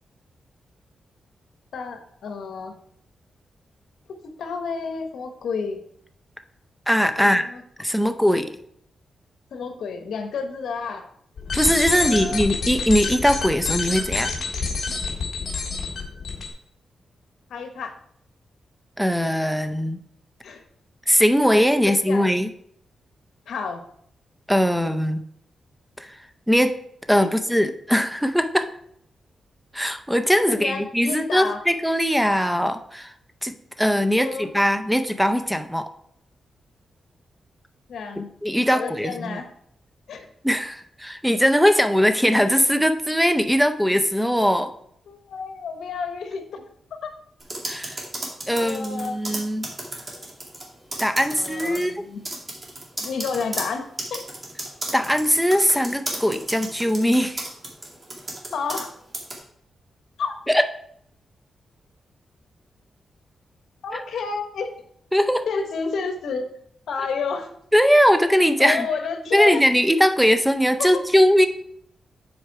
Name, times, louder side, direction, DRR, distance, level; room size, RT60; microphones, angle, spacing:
voice 1, 1.7-2.8 4.1-5.8 7.2-7.6 8.0-8.1 9.5-11.1 11.9-12.5 17.5-18.0 20.4-20.6 21.8-22.4 23.5-23.8 27.2-27.3 30.5-31.6 34.2-34.5 37.9-38.3 38.7-39.5 40.1-40.3 45.1-46.6 47.0-47.1 48.5-49.2 51.3-52.2 53.0-54.3 58.5-58.9 60.2-60.4 63.8-64.7 65.5-66.5 66.9-67.5 68.6-69.6 70.8-71.0, left 5 dB, 85° left, 6 dB, 1.0 m, -30 dB
voice 2, 6.9-7.4 7.8-8.5 11.5-14.3 19.0-20.0 21.1-22.5 24.5-25.2 26.0-26.2 26.5-26.8 27.1-28.7 29.7-33.1 33.4-35.9 38.2-39.4 40.4-44.7 47.7-48.0 48.5-49.7 51.0-51.9 54.9-57.5 60.5-60.6 63.9-64.0 65.1-65.5 67.7-68.9 69.3-71.5, equal, ahead, 9 dB, 0.5 m, -20 dB
sound 1, 11.4-16.5, left 4 dB, 60° left, 2.7 m, -27 dB
sound 2, 47.4-50.6 50.9-51.8 52.2-58.9 59.1-59.4, right 1 dB, 30° right, 2.1 m, -33 dB
8.0 x 4.6 x 4.6 m, 0.68 s
cardioid pair, 105°, 0 cm